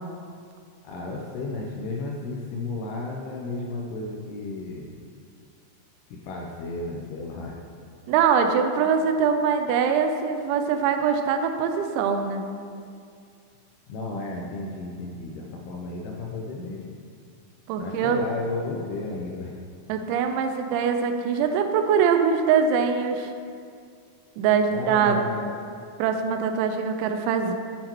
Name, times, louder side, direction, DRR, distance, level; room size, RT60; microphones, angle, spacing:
voice 1, 0.8-4.9 6.1-7.5 13.9-16.9 17.8-19.6 24.7-25.6, left 3 dB, 80° left, -1 dB, 2.4 m, -33 dB
voice 2, 8.1-12.4 17.7-18.2 19.9-23.3 24.4-25.2 26.0-27.5, right 6 dB, 90° right, 6 dB, 3.0 m, -23 dB
8.6 x 7.7 x 3.0 m, 2.3 s
omnidirectional pair, 5.2 m